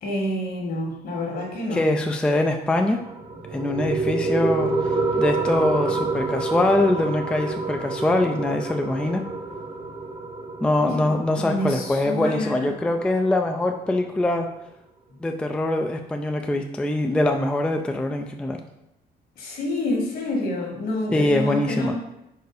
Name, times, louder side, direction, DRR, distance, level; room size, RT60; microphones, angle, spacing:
voice 1, 0.0-1.9 10.8-12.7 19.4-22.0, left 1 dB, 60° left, -1 dB, 1.8 m, -28 dB
voice 2, 1.7-3.0 3.5-9.2 10.6-14.5 15.2-18.6 21.1-22.0, left 1 dB, 5° left, 4 dB, 0.3 m, -23 dB
sound 1, 3.0-14.0, right 3 dB, 30° right, 0.9 m, -28 dB
4.7 x 4.5 x 4.8 m, 0.87 s
cardioid pair, 150°, 17 cm